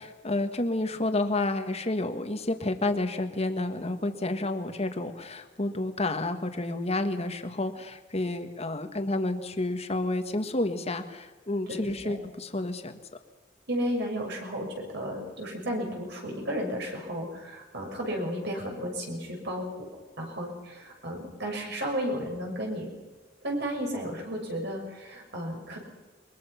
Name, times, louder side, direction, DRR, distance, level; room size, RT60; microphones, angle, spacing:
voice 1, 0.0-12.9, left 2 dB, 35° left, 8 dB, 1.6 m, -30 dB
voice 2, 11.7-12.2 13.7-19.9 20.2-22.9 23.4-25.8, equal, 60° right, 1 dB, 6.1 m, -33 dB
23.0 x 22.0 x 5.9 m, 1.2 s
head